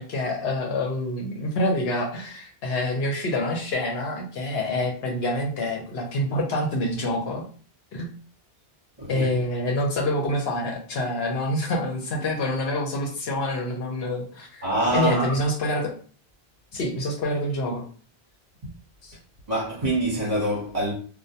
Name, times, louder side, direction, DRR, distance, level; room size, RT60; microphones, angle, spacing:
voice 1, 0.0-7.4 7.9-8.1 9.0-14.7 14.9-15.9 16.7-17.8, left 1 dB, 70° left, 0.9 m, -26 dB
voice 2, 14.6-15.4 19.5-20.9, right 1 dB, 40° right, 1.1 m, -25 dB
2.3 x 2.2 x 2.7 m
omnidirectional pair, 1.1 m